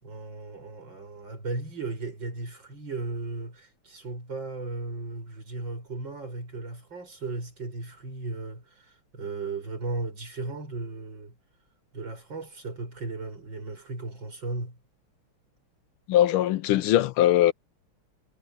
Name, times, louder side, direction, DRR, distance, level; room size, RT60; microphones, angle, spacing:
voice 1, 0.0-11.3 11.9-14.8, right 3 dB, 55° right, 6.4 m, -36 dB
voice 2, 16.1-17.5, left 12 dB, 80° left, 1.5 m, -21 dB
omnidirectional pair, 2.4 m